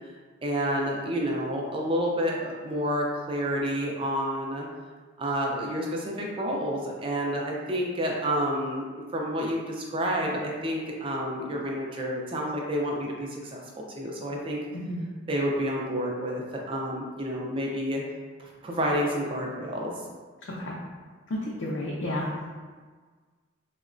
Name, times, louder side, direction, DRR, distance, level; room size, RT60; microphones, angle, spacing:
voice 1, 0.4-4.7 5.2-8.9 9.1-13.6 13.9-14.6 15.3-18.0 18.4-19.9, equal, 25° right, -2 dB, 0.4 m, -29 dB
voice 2, 14.7-15.0 20.6-20.7 21.3-22.3, left 1 dB, 70° left, -5 dB, 0.5 m, -31 dB
3.7 x 2.1 x 2.5 m, 1.5 s
head